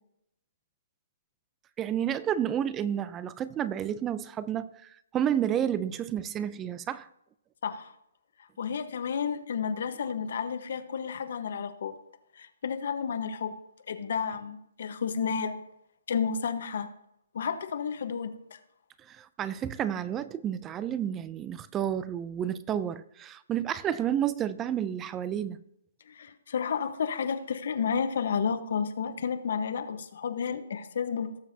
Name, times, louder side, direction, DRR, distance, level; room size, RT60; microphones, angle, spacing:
voice 1, 1.8-7.1 19.1-25.6, right 10 dB, 15° right, 0.4 m, -30 dB
voice 2, 7.6-7.9 8.6-12.0 12.4-13.6 13.9-15.6 16.1-16.9 17.3-18.3 26.1-31.4, left 6 dB, 60° left, 1.2 m, -31 dB
18.5 x 7.1 x 2.8 m
hypercardioid pair, 160°, 0 cm